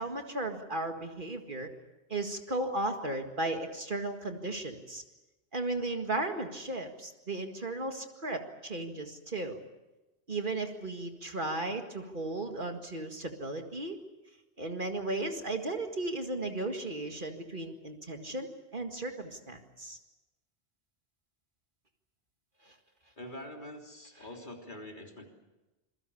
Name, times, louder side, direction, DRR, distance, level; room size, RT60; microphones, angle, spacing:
voice 1, 0.0-1.7 2.1-5.0 5.5-9.6 10.3-14.0 14.6-20.0 22.7-22.8, right 2 dB, 50° right, 5 dB, 2.1 m, -35 dB
voice 2, 23.2-25.3, left 1 dB, 45° left, 1 dB, 3.6 m, -45 dB
27.5 x 22.0 x 7.1 m, 1.1 s
omnidirectional pair, 1.1 m